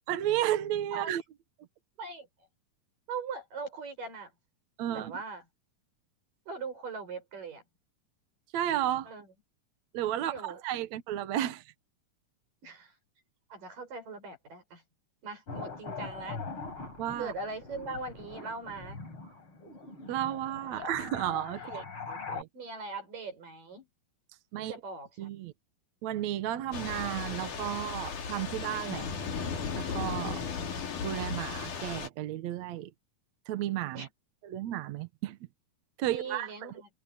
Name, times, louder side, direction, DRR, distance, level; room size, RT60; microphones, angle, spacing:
voice 1, 0.1-1.2 4.8-5.1 8.5-9.1 9.9-11.6 17.0-17.3 20.1-22.5 24.5-24.7 25.2-25.5 26.0-29.1 29.8-30.4 31.0-32.9 33.5-34.1 34.4-35.4 36.0-36.7, right 12 dB, 65° right, 2.2 m, -33 dB
voice 2, 3.1-4.3 4.9-5.4 6.5-7.6 9.1-9.3 10.2-10.6 12.6-12.9 13.5-14.8 15.2-16.4 17.2-19.0 20.7-20.9 21.6-21.8 22.5-23.9 24.6-25.3 30.3-30.7 34.0-34.1 36.0-36.9, right 4 dB, 85° right, 8.8 m, -40 dB
sound 1, 15.5-22.4, left 4 dB, 40° left, 5.2 m, -42 dB
Thunder / Rain, 26.7-32.1, left 5 dB, 70° left, 4.4 m, -36 dB
omnidirectional pair, 3.7 m